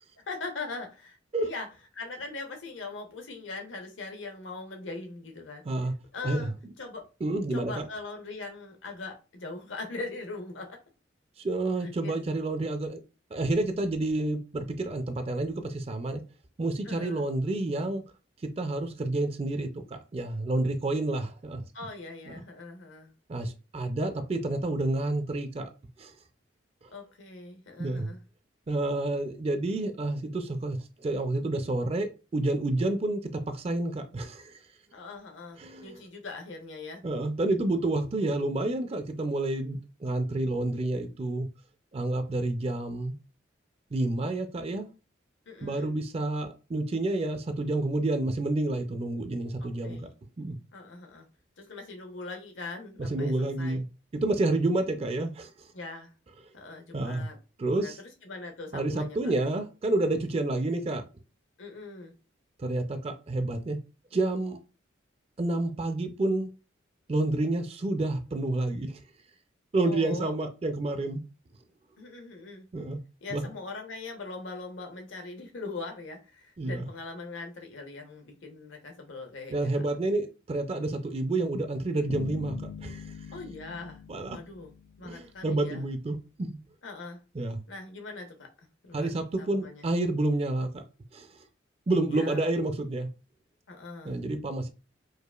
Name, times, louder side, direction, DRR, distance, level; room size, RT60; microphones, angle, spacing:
voice 1, 0.2-1.7 1.9-5.6 6.1-6.5 6.8-7.0 7.5-10.8 11.8-12.2 16.8-17.3 21.7-23.1 26.9-28.2 34.9-37.0 45.5-45.9 49.6-50.1 50.7-51.3 51.6-53.8 55.7-56.1 56.5-57.4 57.8-59.3 61.6-62.1 69.8-70.3 72.0-72.7 73.2-79.7 83.3-84.0 84.3-84.7 85.0-85.8 86.8-87.2 87.7-88.5 88.8-89.9 92.1-92.5 93.7-94.2, left 3 dB, 80° left, 0.9 m, -41 dB
voice 2, 7.2-7.9 11.4-13.0 13.3-16.2 16.6-18.0 18.6-21.6 22.3-22.4 23.3-25.7 26.0-26.1 27.8-28.1 28.7-33.2 33.5-34.6 35.6-35.9 37.0-41.5 41.9-43.1 43.9-44.9 45.6-50.0 50.4-50.6 53.1-53.8 54.1-55.5 56.9-57.3 57.6-58.0 58.7-61.0 62.6-63.8 64.1-64.6 65.4-66.5 67.1-69.0 69.7-71.2 72.7-73.0 73.3-73.4 76.6-76.9 79.5-83.1 84.1-84.4 85.0-86.6 87.4-87.6 88.9-90.8 91.1-91.3 91.9-93.1 94.0-94.7, right 2 dB, 30° right, 0.4 m, -29 dB
sound 1, 82.1-85.5, left 6 dB, 65° left, 0.4 m, -42 dB
4.7 x 2.4 x 2.3 m
head